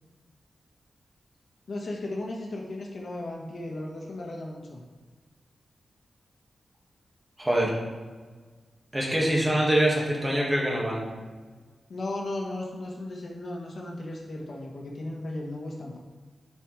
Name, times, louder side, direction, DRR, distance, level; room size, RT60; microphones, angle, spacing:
voice 1, 1.7-4.8 11.9-16.0, left 2 dB, 55° left, -1 dB, 1.2 m, -35 dB
voice 2, 7.4-7.7 8.9-11.0, right 1 dB, 15° right, -3 dB, 1.7 m, -24 dB
9.9 x 4.8 x 3.2 m, 1.4 s
wide cardioid pair, 135°, 0 cm